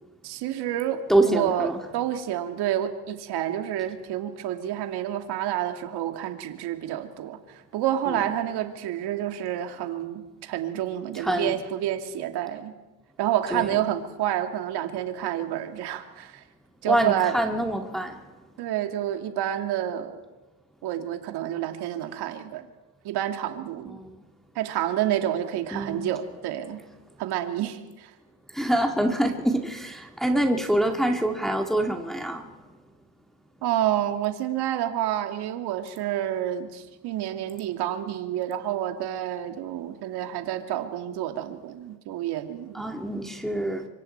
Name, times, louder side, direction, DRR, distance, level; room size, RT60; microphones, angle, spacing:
voice 1, 0.2-12.8 13.2-16.4 16.8-17.4 18.6-20.2 20.8-22.7 23.0-24.0 24.6-26.8 27.2-28.1 33.6-42.9, right 11 dB, 60° right, 6 dB, 2.2 m, -29 dB
voice 2, 1.1-1.8 8.1-8.2 11.2-11.5 13.5-13.7 16.9-18.1 25.7-26.0 28.5-32.4 42.7-43.9, right 1 dB, ahead, 2 dB, 1.9 m, -25 dB
25.0 x 24.0 x 4.5 m, 1.2 s
supercardioid pair, 105°, 44 cm